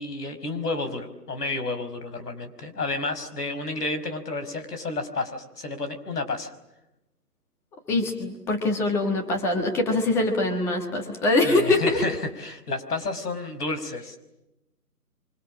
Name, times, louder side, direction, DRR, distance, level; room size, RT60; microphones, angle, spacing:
voice 1, 0.0-6.5 11.4-14.2, left 3 dB, 70° left, 8 dB, 5.4 m, -31 dB
voice 2, 7.9-12.0, left 2 dB, 5° left, 4 dB, 1.4 m, -23 dB
30.0 x 25.0 x 7.3 m, 0.91 s
hypercardioid pair, 165°, 48 cm